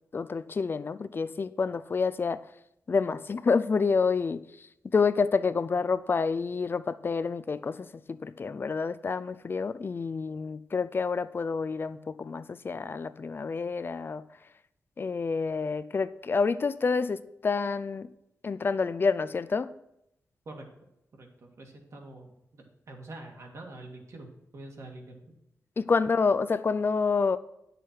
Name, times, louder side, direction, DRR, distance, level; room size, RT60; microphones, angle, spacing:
voice 1, 0.1-2.4 2.9-4.7 4.9-14.2 15.0-18.1 18.4-19.7 25.8-27.4, left 4 dB, 40° left, 15 dB, 0.4 m, -28 dB
voice 2, 21.1-25.3, right 2 dB, 60° right, 1 dB, 2.0 m, -46 dB
10.0 x 6.6 x 4.6 m, 0.82 s
wide cardioid pair, 115°, 6 cm